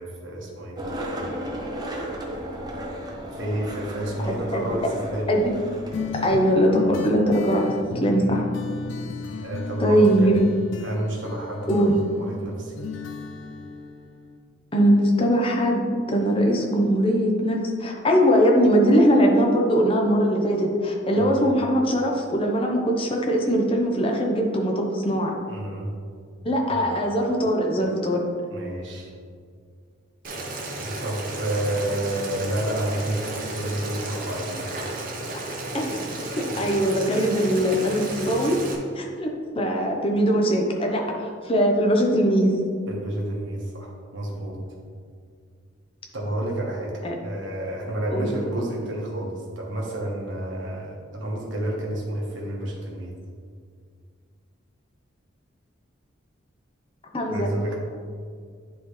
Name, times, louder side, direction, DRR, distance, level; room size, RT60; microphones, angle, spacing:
voice 1, 0.0-1.5 3.3-5.3 8.0-8.4 9.3-10.3 10.8-12.7 21.1-21.4 25.5-25.9 26.7-26.9 28.5-29.1 30.8-34.7 36.5-36.6 42.9-44.6 46.1-53.2 57.3-57.8, right 1 dB, 75° right, -2 dB, 1.3 m, -30 dB
Skateboard, 0.8-6.4, equal, 20° right, 0.7 m, -34 dB
voice 2, 4.3-4.7 5.3-5.5 6.2-7.7 8.0-8.5 9.8-10.5 11.7-12.0 14.7-25.3 26.4-28.2 35.7-36.0 36.6-38.6 39.0-39.3 39.5-41.0 41.4-42.6 47.0-47.1 48.1-48.3 57.1-57.5, equal, 30° left, 0 dB, 0.8 m, -21 dB
sound 1, 5.9-14.4, left 4 dB, 75° left, 0.4 m, -33 dB
Boiling, 30.2-38.7, right 2 dB, 45° right, 0.9 m, -33 dB
10.0 x 3.8 x 3.2 m, 2.1 s
head